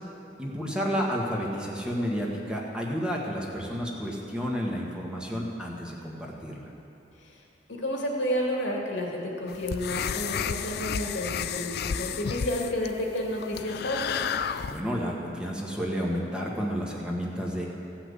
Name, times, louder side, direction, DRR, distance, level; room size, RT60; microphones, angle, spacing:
voice 1, 0.4-6.7 14.7-17.7, equal, 5° right, -3 dB, 1.4 m, -31 dB
voice 2, 7.7-14.2, left 1 dB, 85° left, -1 dB, 2.2 m, -31 dB
sound 1, 9.5-14.8, left 7 dB, 60° left, 0.4 m, -32 dB
15.0 x 5.9 x 8.1 m, 2.8 s
head